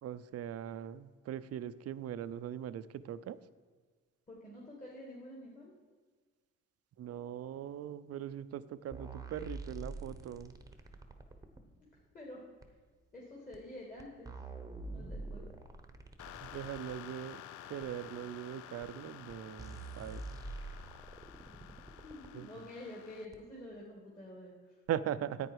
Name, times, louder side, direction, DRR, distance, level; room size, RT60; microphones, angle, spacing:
voice 1, 0.0-3.4 7.0-10.5 16.4-17.4 17.7-20.2 22.3-22.5 24.9-25.5, right 10 dB, 55° right, 14 dB, 0.5 m, -40 dB
voice 2, 4.3-5.7 12.1-12.5 13.1-14.3 14.9-15.4 22.0-24.8, left 1 dB, 25° left, -4 dB, 2.6 m, -48 dB
sound 1, 8.9-11.6 12.6-12.7 13.5-13.6 14.0-17.0 17.8-17.9 18.8-18.9 19.3-19.4 19.6-22.3 23.3-23.4, right 2 dB, 10° right, 1.0 m, -46 dB
sound 2, 16.2-23.3, left 12 dB, 75° left, 0.5 m, -51 dB
10.0 x 8.6 x 4.7 m, 1.5 s
cardioid pair, 90°, 30 cm